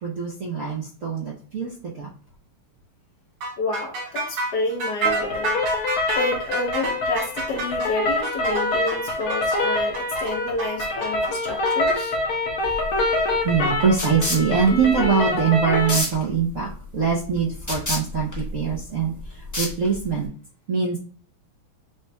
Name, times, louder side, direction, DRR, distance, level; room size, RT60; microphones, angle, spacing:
voice 1, 0.0-1.7 2.0-2.1 13.4-19.1 19.6-20.3 20.7-21.0, right 6 dB, 60° right, -4 dB, 0.8 m, -23 dB
sound 1, 3.4-12.0, right 3 dB, 80° right, 1.9 m, -29 dB
voice 2, 3.6-5.6 6.1-12.2, left 2 dB, 65° left, 0 dB, 1.2 m, -30 dB
sound 2, 5.0-16.0, left 2 dB, 85° left, 1.9 m, -25 dB
sound 3, 12.6-20.3, left 1 dB, 20° left, 0.5 m, -31 dB
6.5 x 2.9 x 2.2 m, 0.42 s
omnidirectional pair, 2.3 m